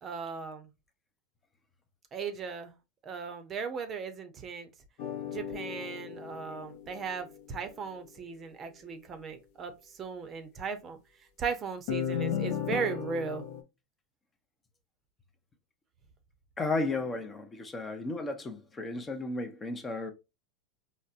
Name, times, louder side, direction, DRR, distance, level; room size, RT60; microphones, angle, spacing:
voice 1, 0.0-0.7 2.1-2.7 3.0-4.7 5.3-9.7 10.0-11.0 11.4-13.4, right 5 dB, 30° right, 0.6 m, -37 dB
sound 1, 5.0-7.6 11.9-13.6, left 8 dB, 65° left, 0.7 m, -35 dB
voice 2, 16.6-20.1, left 2 dB, 20° left, 0.6 m, -34 dB
4.0 x 2.1 x 2.4 m
hypercardioid pair, 110°, 0 cm